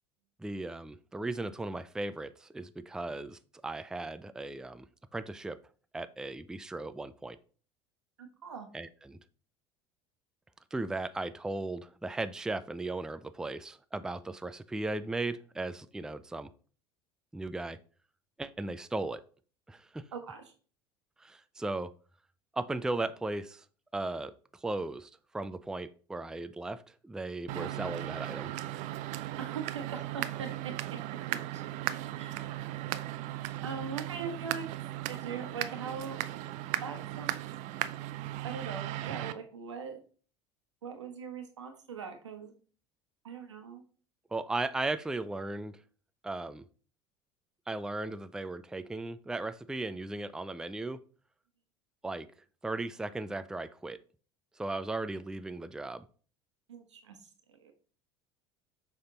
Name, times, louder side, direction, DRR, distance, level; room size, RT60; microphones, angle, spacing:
voice 1, 0.4-4.8 5.1-5.6 5.9-7.4 8.7-9.2 10.7-16.5 17.3-17.8 18.4-19.2 19.7-20.1 21.2-21.9 22.5-23.6 23.9-24.3 24.6-28.5 44.3-45.8 46.2-46.6 47.7-51.0 52.0-52.3 52.6-54.0 54.6-56.1, right 2 dB, 5° right, 12 dB, 0.4 m, -36 dB
voice 2, 8.2-8.7 20.1-20.5 27.5-27.7 29.4-30.7 31.3-31.6 32.2-32.5 33.6-36.2 36.8-37.4 38.4-40.0 40.8-42.5 43.2-43.8 56.7-57.7, right 5 dB, 90° right, 5 dB, 1.2 m, -41 dB
sound 1, 27.5-39.3, right 14 dB, 55° right, 0.5 m, -37 dB
6.8 x 3.6 x 3.9 m, 0.41 s
hypercardioid pair, 75°, 15 cm